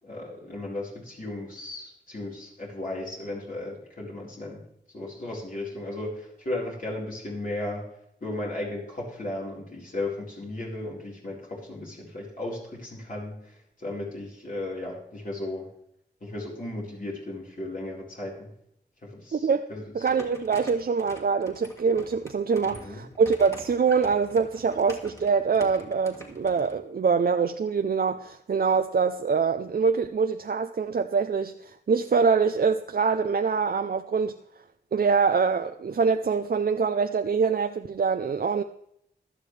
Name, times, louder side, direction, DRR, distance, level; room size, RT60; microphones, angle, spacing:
voice 1, 0.0-4.6 4.9-7.9 8.2-15.7 16.2-18.5 19.0-19.9 22.6-23.1, left 2 dB, 50° left, 4.4 m, -35 dB
voice 2, 19.3-19.6 19.9-34.3 34.9-38.6, right 5 dB, 60° right, 0.5 m, -24 dB
sound 1, 20.0-26.8, equal, 15° left, 2.3 m, -45 dB
16.0 x 11.5 x 3.3 m
wide cardioid pair, 85°, 18 cm